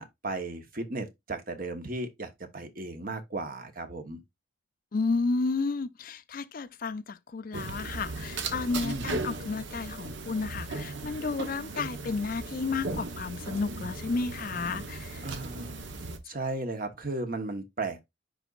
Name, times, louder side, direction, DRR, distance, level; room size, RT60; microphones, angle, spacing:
voice 1, 0.0-4.2 8.8-9.2 15.2-15.8 16.2-18.0, right 2 dB, 45° right, 1.2 m, -35 dB
voice 2, 4.9-15.2, left 4 dB, 45° left, 0.4 m, -32 dB
sound 1, 7.5-16.2, right 3 dB, 60° right, 1.0 m, -37 dB
10.0 x 4.0 x 2.5 m
head